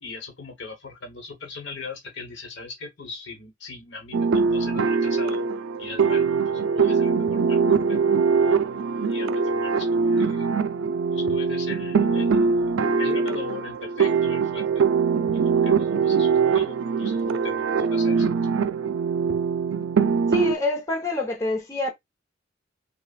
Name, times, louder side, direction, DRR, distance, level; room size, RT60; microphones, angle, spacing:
voice 1, 0.0-5.5 5.8-8.1 9.1-10.5 11.1-12.6 13.0-14.9 15.4-18.7, left 4 dB, 65° left, 1.2 m, -39 dB
sound 1, 4.1-20.5, right 5 dB, 75° right, 0.4 m, -22 dB
voice 2, 20.3-21.9, left 2 dB, 15° left, 0.9 m, -27 dB
5.3 x 2.3 x 2.4 m
head